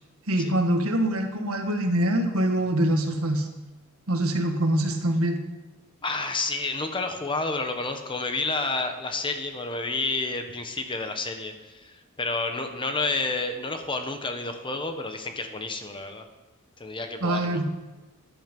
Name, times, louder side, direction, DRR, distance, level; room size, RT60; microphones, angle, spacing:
voice 1, 0.3-3.5 4.1-5.4 17.2-17.6, right 1 dB, 70° right, 5 dB, 1.7 m, -24 dB
voice 2, 6.0-16.2 16.8-17.6, left 3 dB, 25° left, 6 dB, 1.1 m, -30 dB
13.5 x 11.0 x 5.4 m, 1.2 s
head